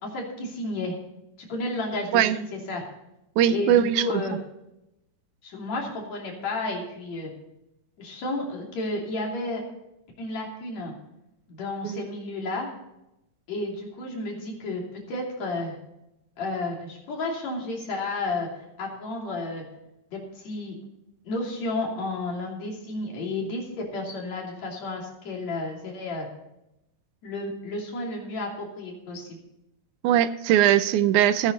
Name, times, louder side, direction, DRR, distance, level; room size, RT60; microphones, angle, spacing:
voice 1, 0.0-1.0 1.5-2.8 3.5-4.4 5.4-7.3 8.0-9.6 10.2-10.9 11.5-12.7 13.5-15.8 16.4-18.5 18.8-19.6 20.1-20.8 21.2-26.3 27.2-29.4, left 2 dB, 55° left, -1 dB, 4.0 m, -32 dB
voice 2, 3.4-4.1 11.8-12.0 30.0-31.5, right 11 dB, 75° right, 14 dB, 1.9 m, -20 dB
15.0 x 9.7 x 4.0 m, 0.88 s
omnidirectional pair, 3.8 m